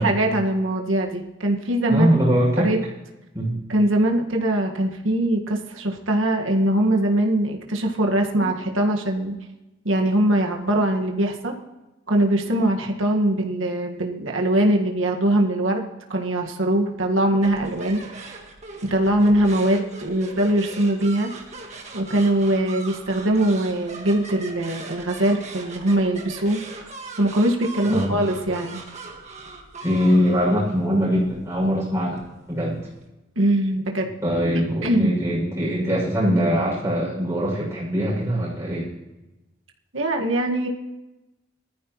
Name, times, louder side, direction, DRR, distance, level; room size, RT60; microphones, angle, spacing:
voice 1, 0.0-2.1 2.6-2.8 3.7-9.4 9.8-11.5 12.1-18.3 18.9-21.3 21.9-26.9 27.2-28.8 33.3-34.1 34.8-35.1 39.9-40.7, right 1 dB, 85° right, 1 dB, 1.7 m, -22 dB
voice 2, 1.9-2.7 3.3-3.6 8.4-8.5 27.9-28.2 29.8-32.2 32.5-32.8 34.2-38.9, equal, 15° right, -6 dB, 6.5 m, -22 dB
sound 1, 17.4-33.0, right 3 dB, 35° right, 1.7 m, -40 dB
20.5 x 14.0 x 3.1 m, 1.0 s
head